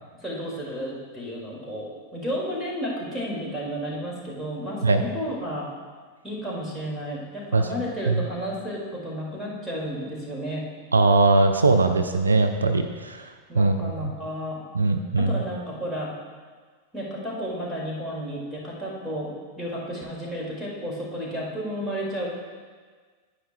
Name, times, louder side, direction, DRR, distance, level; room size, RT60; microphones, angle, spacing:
voice 1, 0.2-5.7 6.2-10.7 13.5-14.6 15.2-16.1 16.9-22.3, equal, ahead, -6 dB, 2.2 m, -32 dB
voice 2, 10.9-13.3 13.5-14.1 14.7-15.3, right 3 dB, 80° right, 7 dB, 0.4 m, -20 dB
10.0 x 9.2 x 2.3 m, 1.5 s
figure-of-eight pair, 90°, 0 cm